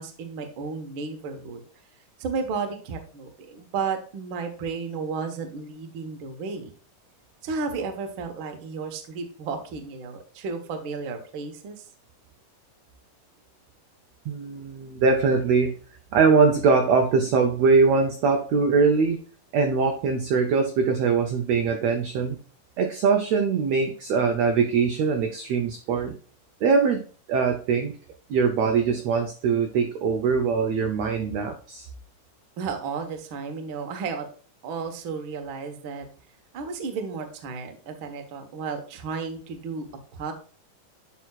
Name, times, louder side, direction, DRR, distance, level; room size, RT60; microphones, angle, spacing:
voice 1, 0.0-1.6 2.2-6.7 7.4-11.8 32.6-34.3 34.6-36.1 36.5-39.9 40.1-40.3, right 5 dB, 60° right, 5 dB, 1.3 m, -33 dB
voice 2, 14.2-15.8 16.1-19.2 19.5-22.4 22.8-26.1 26.6-27.0 27.3-27.9 28.3-31.9, right 5 dB, 75° right, 4 dB, 1.5 m, -22 dB
9.2 x 5.7 x 2.4 m, 0.41 s
omnidirectional pair, 3.9 m